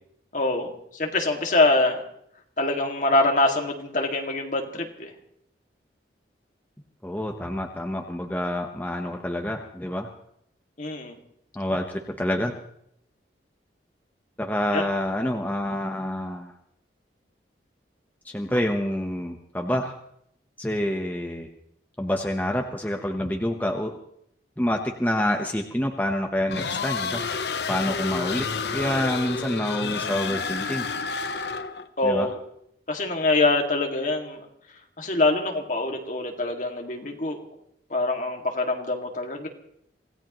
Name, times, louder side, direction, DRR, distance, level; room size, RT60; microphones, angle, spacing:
voice 1, 0.3-2.0 2.6-5.1 10.8-11.1 14.7-14.8 32.0-32.4 32.9-34.4 35.0-37.4 37.9-39.5, left 2 dB, 45° left, 2 dB, 2.3 m, -24 dB
voice 2, 7.0-10.1 11.5-12.5 14.4-16.5 18.2-19.9 20.6-21.5 22.0-23.9 24.6-27.2 27.7-28.5 28.7-30.9 32.0-32.3, left 1 dB, 10° left, 2 dB, 1.0 m, -27 dB
sound 1, 26.5-31.9, left 5 dB, 70° left, 0.9 m, -30 dB
25.5 x 17.0 x 3.1 m, 0.72 s
head